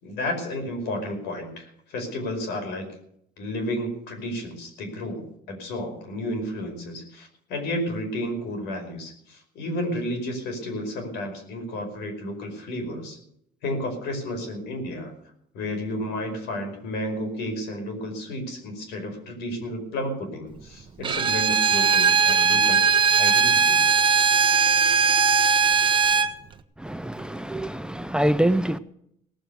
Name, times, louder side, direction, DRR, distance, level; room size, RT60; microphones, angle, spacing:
voice 1, 0.0-2.9 3.4-13.2 13.6-15.1 15.5-22.8 23.2-23.8, left 1 dB, 85° left, 5.1 m, -32 dB
Bowed string instrument, 21.0-26.3, right 5 dB, 30° right, 1.1 m, -19 dB
voice 2, 26.8-28.8, right 1 dB, 5° right, 0.6 m, -25 dB
18.0 x 7.7 x 8.3 m
cardioid pair, 110°, 17 cm